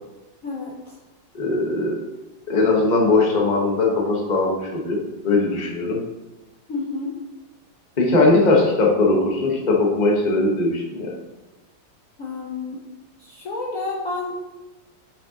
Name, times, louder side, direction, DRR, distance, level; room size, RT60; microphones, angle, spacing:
voice 1, 0.4-0.9 6.7-7.2 12.2-12.8 13.2-14.3, left 3 dB, 55° left, -3 dB, 1.1 m, -30 dB
voice 2, 1.3-2.0 2.5-5.0 5.2-6.0 8.0-11.1, left 2 dB, 30° left, -1 dB, 1.0 m, -19 dB
8.7 x 5.2 x 2.9 m, 1.0 s
omnidirectional pair, 2.1 m